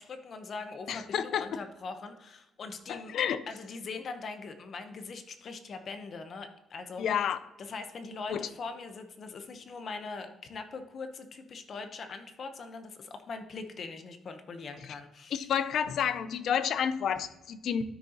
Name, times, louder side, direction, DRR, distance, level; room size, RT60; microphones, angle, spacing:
voice 1, 0.0-3.1 3.5-7.1 7.6-15.4, left 4 dB, 40° left, 7 dB, 0.9 m, -42 dB
voice 2, 0.9-1.5 2.9-3.4 7.0-7.4 8.3-8.5 15.3-17.8, left 8 dB, 60° left, 13 dB, 0.5 m, -30 dB
13.0 x 6.4 x 2.9 m, 0.95 s
cardioid pair, 175°, 0 cm